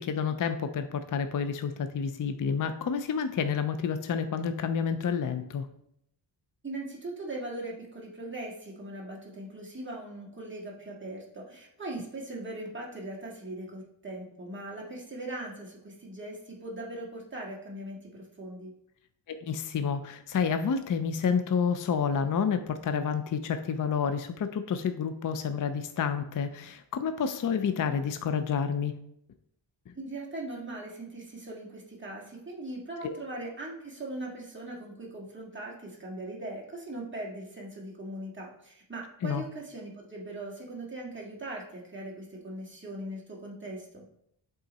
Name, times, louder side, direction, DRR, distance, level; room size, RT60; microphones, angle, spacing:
voice 1, 0.0-5.7 19.3-28.9 29.9-30.0 33.0-33.2 39.2-39.4, left 6 dB, 45° left, 9 dB, 0.4 m, -29 dB
voice 2, 6.6-18.7 29.9-44.0, right 1 dB, 25° right, -4 dB, 1.8 m, -40 dB
8.0 x 3.8 x 4.1 m, 0.72 s
wide cardioid pair, 145°, 47 cm